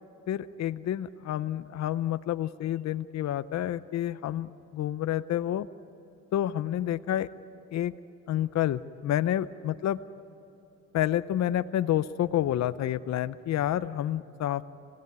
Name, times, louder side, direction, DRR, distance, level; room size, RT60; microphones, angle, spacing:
voice 1, 0.3-5.7 6.3-7.3 7.7-7.9 8.3-10.0 10.9-14.6, left 12 dB, 65° left, 12 dB, 0.7 m, -29 dB
27.5 x 17.0 x 9.5 m, 3.0 s
cardioid pair, 90°, 30 cm